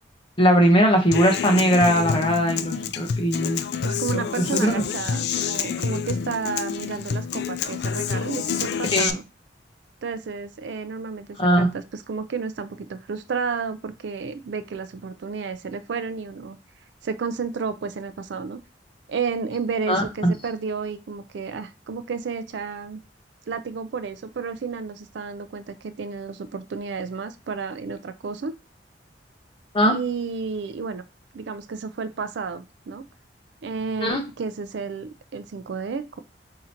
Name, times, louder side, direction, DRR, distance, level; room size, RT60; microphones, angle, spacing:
voice 1, 0.4-3.6 4.4-4.8 8.9-9.1 11.4-11.7 19.9-20.3 29.7-30.0 34.0-34.2, equal, 30° left, 3 dB, 1.0 m, -20 dB
Human voice / Acoustic guitar, 1.1-9.1, left 6 dB, 65° left, 0.3 m, -28 dB
voice 2, 3.4-9.2 10.0-16.6 17.0-18.6 19.1-23.0 23.5-28.5 29.9-31.0 31.3-33.0 33.6-36.2, right 5 dB, 75° right, 10 dB, 0.4 m, -31 dB
3.7 x 2.8 x 4.3 m, 0.28 s
head